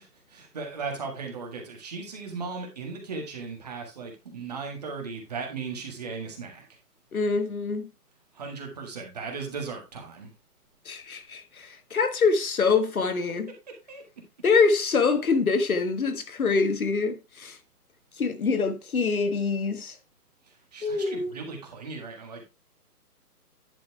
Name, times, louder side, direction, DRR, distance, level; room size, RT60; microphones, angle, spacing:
voice 1, 0.0-6.6 8.3-10.3 13.9-14.0 20.7-22.4, right 4 dB, 25° right, 1.7 m, -37 dB
voice 2, 7.1-7.9 10.8-13.5 14.4-17.6 18.2-19.9 20.8-21.3, left 4 dB, 60° left, 1.5 m, -25 dB
10.5 x 4.4 x 4.6 m
hypercardioid pair, 170°, 47 cm